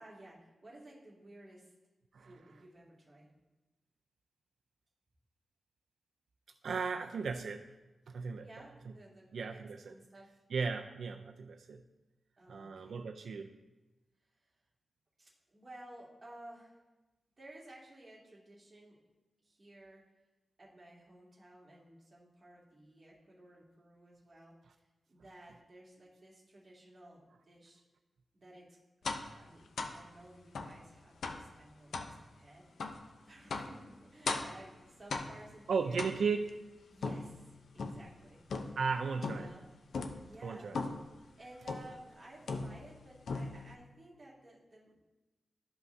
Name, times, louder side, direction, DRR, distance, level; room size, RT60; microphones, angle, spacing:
voice 1, 0.0-1.7 2.2-3.3 8.4-10.4 12.4-13.1 15.2-16.8 17.4-19.0 19.4-20.0 20.6-27.8 28.3-36.3 36.9-38.4 39.2-39.6 40.2-40.9 41.4-45.0, right 1 dB, 30° right, -6 dB, 2.3 m, -55 dB
voice 2, 6.6-7.7 8.1-8.5 9.3-9.9 10.5-11.8 12.5-13.5 35.7-36.4 38.8-39.5 40.4-40.8, right 5 dB, 85° right, 5 dB, 0.4 m, -35 dB
sound 1, 29.0-29.3 29.8-30.0 30.5-30.8 31.2-31.5 31.9-32.1 32.8-33.0 33.5-33.8 34.3-34.6 35.1-35.5 36.0-36.5 37.0-38.1 38.5-38.9 39.2-39.6 39.9-40.2 40.7-41.1 41.7-42.0 42.5-43.0 43.3-43.7, left 3 dB, 85° left, 0.6 m, -38 dB
12.5 x 5.6 x 2.7 m, 1.1 s
wide cardioid pair, 120°, 0 cm